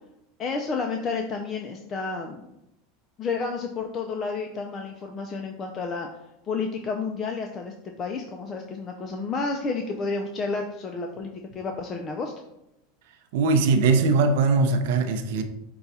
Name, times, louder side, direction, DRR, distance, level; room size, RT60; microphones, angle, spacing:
voice 1, 0.4-2.5 3.2-6.1 6.4-12.3, left 4 dB, 30° left, 3 dB, 0.5 m, -31 dB
voice 2, 13.3-15.4, right 4 dB, 75° right, 7 dB, 0.6 m, -21 dB
5.2 x 2.3 x 4.2 m, 0.86 s
supercardioid pair, 125°, 0 cm